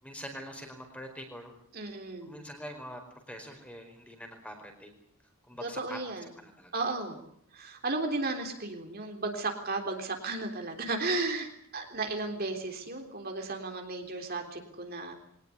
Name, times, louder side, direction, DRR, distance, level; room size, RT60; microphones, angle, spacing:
voice 1, 0.0-1.5 2.2-3.0 3.3-4.9 5.5-6.0 6.4-6.7, equal, 5° left, 5 dB, 4.6 m, -44 dB
voice 2, 1.7-2.4 5.6-6.3 6.7-7.3 7.5-15.1, right 3 dB, 45° right, 3 dB, 3.5 m, -34 dB
23.0 x 19.0 x 9.8 m, 0.67 s
head